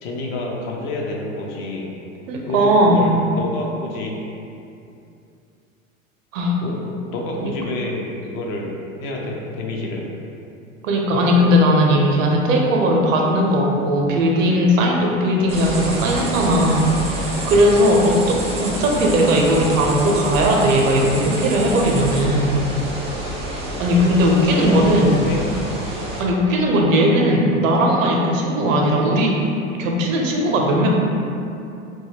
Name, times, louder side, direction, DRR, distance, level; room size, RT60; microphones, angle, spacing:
voice 1, 0.0-1.9 2.4-4.2 6.6-6.8 7.0-8.7 9.0-10.0 24.5-25.5, left 2 dB, 50° left, -1 dB, 0.5 m, -28 dB
voice 2, 2.3-3.1 6.3-6.6 7.4-7.5 10.8-22.6 23.8-25.1 26.2-29.4 29.8-30.9, equal, 75° right, 0 dB, 0.6 m, -18 dB
sound 1, 15.5-26.2, right 1 dB, 15° right, 0.3 m, -28 dB
2.2 x 2.0 x 3.3 m, 2.6 s
hypercardioid pair, 85°, 40 cm